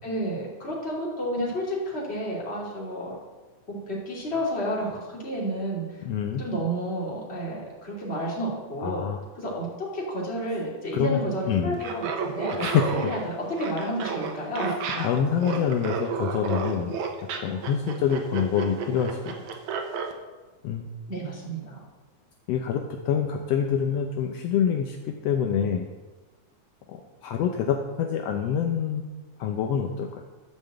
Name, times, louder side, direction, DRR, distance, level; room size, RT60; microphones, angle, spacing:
voice 1, 0.0-3.2 3.7-5.8 6.4-9.0 9.4-12.6 12.9-14.7 15.5-15.6 21.1-21.8, equal, 20° left, -5 dB, 2.8 m, -31 dB
voice 2, 6.0-6.4 8.8-9.2 10.9-11.8 12.6-13.1 14.9-17.0 17.4-19.5 20.6-20.9 22.5-25.9 26.9-29.1 29.4-30.2, left 8 dB, 75° left, 3 dB, 1.5 m, -26 dB
Laughter, 11.7-20.1, right 6 dB, 70° right, 2.4 m, -31 dB
12.0 x 5.4 x 7.6 m, 1.2 s
omnidirectional pair, 3.6 m